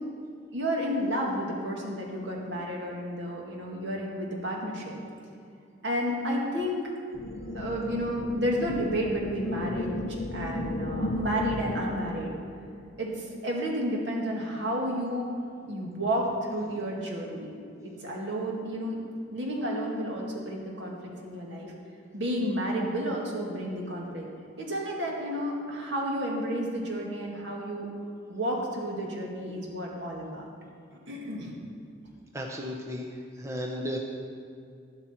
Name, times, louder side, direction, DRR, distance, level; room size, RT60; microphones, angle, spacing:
voice 1, 0.5-5.0 5.8-6.8 7.5-10.0 10.3-12.3 13.0-15.3 15.7-17.5 17.8-19.0 19.3-21.7 22.1-24.3 24.6-27.9 28.3-30.5 31.1-31.5, equal, 65° right, -2 dB, 2.1 m, -31 dB
sound 1, 7.1-12.2, left 1 dB, 45° left, 0.6 m, -33 dB
voice 2, 32.3-34.0, equal, 15° right, 0 dB, 0.7 m, -34 dB
11.5 x 11.0 x 4.4 m, 2.5 s
head